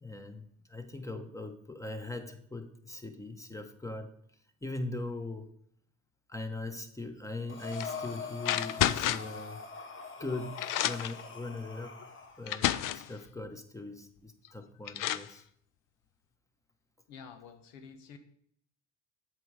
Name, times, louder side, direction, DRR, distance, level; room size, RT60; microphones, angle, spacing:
voice 1, 0.0-4.1 4.6-5.5 6.3-9.6 10.2-12.0 12.4-15.4, left 2 dB, 10° left, 7 dB, 0.9 m, -40 dB
Breathing, 7.5-12.4, left 4 dB, 30° left, 1.1 m, -43 dB
sound 1, 7.7-8.0 8.4-9.4 10.2-10.3 10.6-11.2 12.0-12.1 12.5-13.1 14.4-14.5 14.9-15.3, left 13 dB, 55° left, 0.5 m, -31 dB
voice 2, 17.1-18.2, left 6 dB, 85° left, 9 dB, 0.9 m, -49 dB
7.7 x 4.6 x 4.9 m, 0.68 s
supercardioid pair, 75°, 40 cm